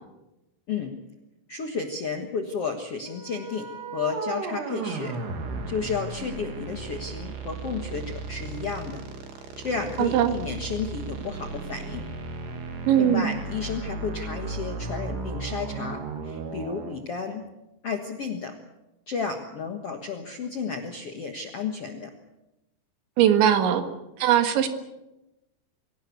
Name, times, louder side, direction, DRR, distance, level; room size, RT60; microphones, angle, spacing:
voice 1, 1.5-3.7 3.9-5.2 5.7-9.0 9.6-12.0 13.0-17.4 17.8-18.5 19.1-22.1, left 5 dB, 65° left, 5 dB, 1.5 m, -32 dB
sound 1, 3.1-16.9, right 3 dB, 65° right, 4.7 m, -35 dB
voice 2, 10.0-10.3 12.9-13.3 23.2-23.8 24.2-24.7, right 10 dB, 85° right, 8 dB, 4.1 m, -20 dB
24.0 x 17.5 x 8.3 m, 0.96 s
omnidirectional pair, 5.2 m